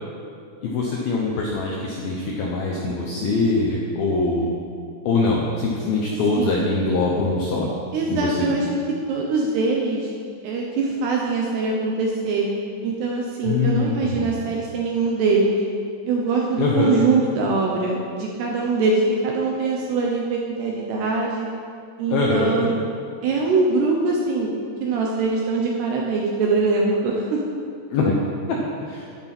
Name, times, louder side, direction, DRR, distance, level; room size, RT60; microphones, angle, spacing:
voice 1, 0.6-4.5 5.1-7.7 8.1-8.5 13.4-14.4 16.6-17.0 22.1-22.7 27.9-28.1 28.5-29.0, left 3 dB, 75° left, -2 dB, 2.1 m, -23 dB
voice 2, 7.9-8.8 9.1-10.1 10.4-12.5 12.8-15.5 16.1-21.5 22.0-22.7 23.2-24.5 24.8-27.4, right 3 dB, 75° right, -1 dB, 2.5 m, -22 dB
11.0 x 11.0 x 6.0 m, 2.5 s
omnidirectional pair, 5.8 m